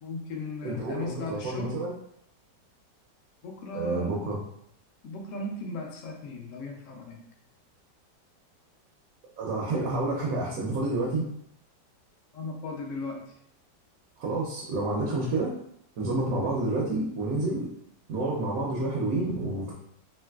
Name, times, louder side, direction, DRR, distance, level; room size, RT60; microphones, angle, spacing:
voice 1, 0.0-1.7 3.4-4.3 5.0-7.2 12.3-13.2, left 2 dB, 70° left, 0 dB, 0.8 m, -37 dB
voice 2, 0.6-1.9 3.7-4.4 9.4-11.2 14.2-15.5 16.0-17.7 18.1-19.7, right 2 dB, 70° right, -3 dB, 0.9 m, -29 dB
3.1 x 2.8 x 2.3 m, 0.71 s
omnidirectional pair, 1.9 m